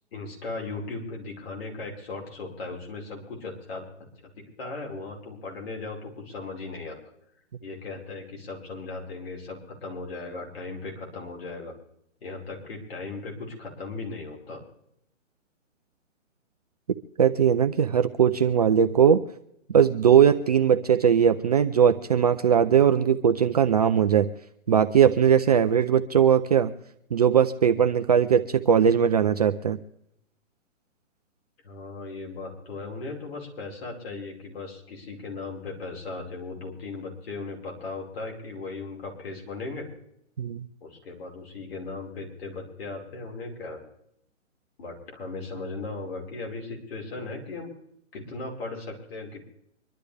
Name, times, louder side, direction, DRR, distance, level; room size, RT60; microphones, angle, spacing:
voice 1, 0.1-3.9 4.6-7.0 7.6-11.7 12.2-14.6 31.6-39.9 40.8-43.8 44.8-47.7 48.1-49.4, left 3 dB, 50° left, 0 dB, 5.0 m, -37 dB
voice 2, 17.2-19.2 19.7-24.3 24.7-26.7 27.1-29.8 40.4-40.6, right 8 dB, 30° right, 6 dB, 0.4 m, -20 dB
25.0 x 12.0 x 3.4 m, 0.75 s
hypercardioid pair, 150°, 38 cm